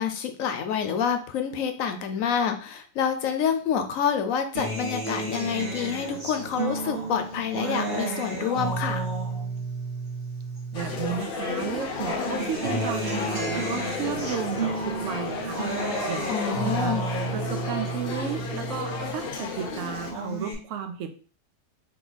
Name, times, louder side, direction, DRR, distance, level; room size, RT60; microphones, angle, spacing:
voice 1, 0.0-9.0 16.3-17.0, left 7 dB, 80° left, 7 dB, 1.0 m, -27 dB
Acoustic guitar, 4.6-11.2 11.6-19.2 19.6-20.5, right 3 dB, 45° right, 1.4 m, -32 dB
sound 1, 10.7-20.1, left 4 dB, 55° left, 0.7 m, -33 dB
voice 2, 10.7-15.6 16.1-17.0 17.3-21.1, right 8 dB, 70° right, 7 dB, 1.0 m, -33 dB
3.7 x 2.8 x 3.9 m, 0.39 s
omnidirectional pair, 1.4 m